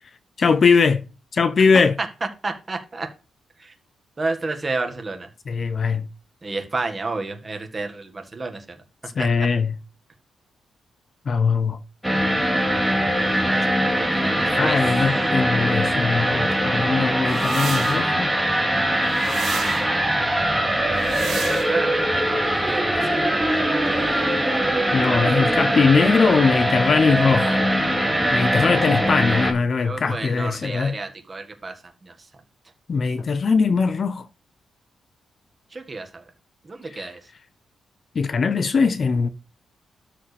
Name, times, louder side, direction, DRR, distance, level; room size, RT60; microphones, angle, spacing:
voice 1, 0.4-1.0 1.3-1.9 5.5-6.1 9.2-9.7 11.3-11.8 14.6-18.3 24.9-27.6 28.3-30.9 32.9-34.2 37.0-37.1 38.2-39.3, left 5 dB, 40° left, 0.6 m, -20 dB
voice 2, 1.6-2.1 2.4-3.1 3.6-3.7 4.2-5.3 6.4-8.8 9.2-9.3 13.1-14.8 20.0-21.3 21.7-23.5 23.8-24.6 29.8-31.8 32.0-32.1 35.7-36.3 36.6-37.2, right 3 dB, 25° right, 1.6 m, -32 dB
sound 1, 12.0-29.5, right 1 dB, ahead, 1.9 m, -22 dB
sound 2, 17.3-18.0 19.1-19.8 21.0-21.7, right 7 dB, 75° right, 2.3 m, -33 dB
12.5 x 5.0 x 3.3 m
wide cardioid pair, 135°, 0 cm